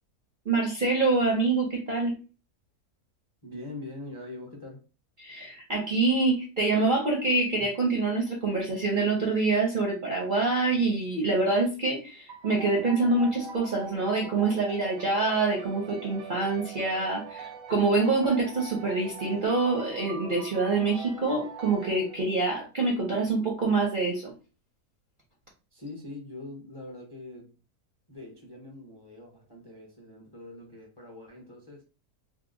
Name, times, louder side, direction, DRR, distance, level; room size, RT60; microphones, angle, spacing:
voice 1, 0.4-2.2 5.2-24.4, right 3 dB, 45° right, 0.6 m, -26 dB
voice 2, 3.4-4.8 25.7-27.6 28.1-31.8, left 2 dB, 20° left, 0.6 m, -43 dB
sound 1, 12.3-22.7, right 5 dB, 75° right, 1.0 m, -43 dB
2.8 x 2.0 x 3.7 m
omnidirectional pair, 1.6 m